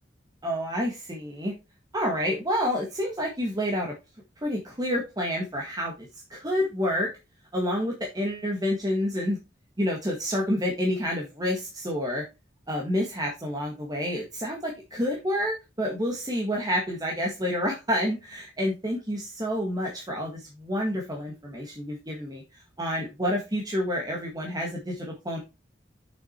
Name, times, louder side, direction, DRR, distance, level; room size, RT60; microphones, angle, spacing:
voice 1, 0.4-1.5 1.9-3.9 4.4-7.1 7.5-9.4 9.8-12.2 12.7-25.4, equal, 20° right, -1 dB, 1.7 m, -29 dB
7.2 x 6.1 x 4.4 m, 0.26 s
head